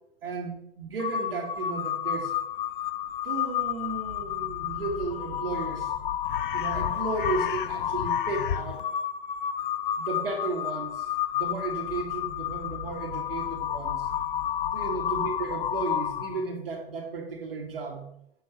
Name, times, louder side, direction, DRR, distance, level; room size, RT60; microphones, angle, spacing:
voice 1, 0.2-2.3 3.2-5.9 6.5-8.9 10.0-11.1 11.3-14.1 14.7-18.1, right 4 dB, 70° right, 3 dB, 1.8 m, -34 dB
Crow, 1.0-16.5, left 10 dB, 60° left, 0.5 m, -31 dB
7.5 x 6.4 x 3.0 m, 0.77 s
hypercardioid pair, 125°, 30 cm